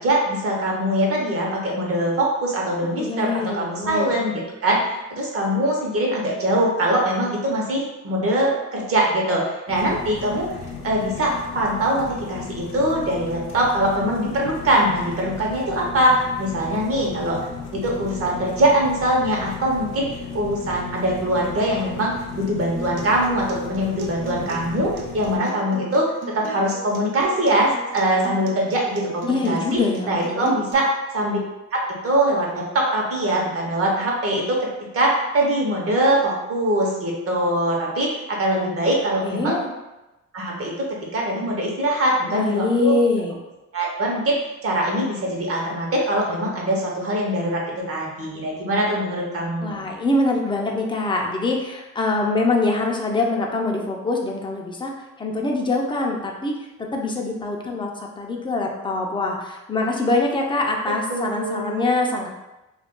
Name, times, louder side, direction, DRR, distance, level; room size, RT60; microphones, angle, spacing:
voice 1, 0.0-10.5 10.8-17.4 17.7-20.1 20.3-26.1 26.3-29.6 30.1-31.4 31.7-34.7 34.9-39.6 40.3-40.9 41.1-43.0 43.7-47.6 47.9-49.9 61.1-61.8, right 1 dB, 50° right, -2 dB, 0.9 m, -22 dB
voice 2, 2.8-4.1 29.3-30.5 39.2-39.7 42.3-43.4 49.6-54.9 55.2-62.3, left 2 dB, 15° left, 0 dB, 0.5 m, -24 dB
sound 1, 9.7-25.4, left 5 dB, 90° left, 0.6 m, -35 dB
Acoustic guitar, 22.8-30.7, right 2 dB, 85° right, 0.5 m, -37 dB
2.4 x 2.3 x 3.6 m, 1.0 s
cardioid pair, 90°, 30 cm